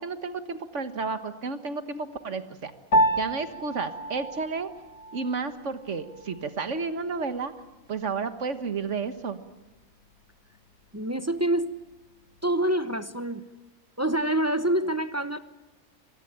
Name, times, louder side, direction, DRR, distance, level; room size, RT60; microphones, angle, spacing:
voice 1, 0.0-2.7 3.2-4.7 5.1-7.5 7.9-9.4, right 4 dB, 55° right, 10 dB, 1.8 m, -31 dB
Piano, 2.9-12.5, right 1 dB, 85° left, 2.4 m, -32 dB
voice 2, 10.9-11.7 12.4-13.5 14.0-15.4, right 1 dB, 15° right, 10 dB, 0.7 m, -26 dB
24.5 x 20.0 x 8.9 m, 1.1 s
omnidirectional pair, 1.5 m